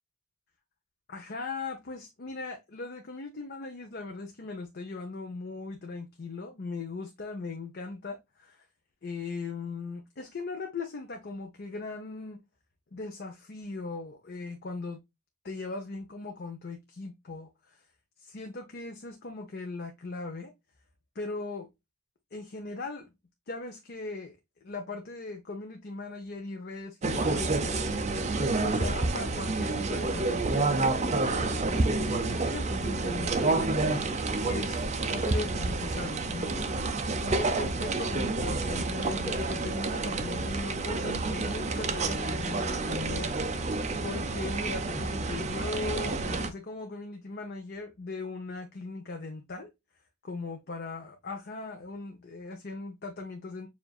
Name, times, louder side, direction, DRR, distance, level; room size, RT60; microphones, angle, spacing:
voice 1, 1.1-8.6 9.0-12.4 12.9-15.0 15.4-17.8 18.2-20.5 21.1-21.7 22.3-23.1 23.5-24.4 24.6-28.2 28.6-33.7 34.4-36.8 37.2-43.6 44.0-49.7 50.2-53.7, left 3 dB, 50° left, 0.7 m, -39 dB
sound 1, 27.0-46.5, right 3 dB, 30° right, 0.5 m, -29 dB
7.0 x 2.6 x 2.3 m
head